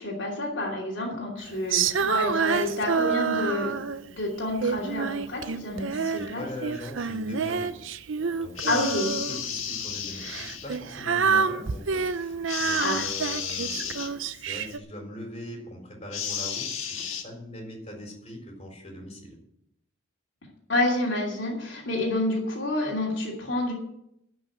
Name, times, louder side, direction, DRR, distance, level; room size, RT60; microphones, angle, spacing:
voice 1, 0.0-3.8 4.1-6.4 8.7-9.1 12.8-13.1 20.7-23.7, left 1 dB, 65° left, -3 dB, 2.9 m, -28 dB
Female singing, 1.7-4.1 4.6-6.3 6.6-9.4 10.2-14.8, right 6 dB, 70° right, 0.6 m, -28 dB
voice 2, 5.9-8.0 8.4-9.0 9.3-19.3, equal, 30° left, 1 dB, 4.0 m, -41 dB
sound 1, 8.6-10.8 12.5-14.1 16.1-17.2, left 7 dB, 80° left, 1.6 m, -33 dB
11.5 x 6.2 x 9.0 m, 0.77 s
head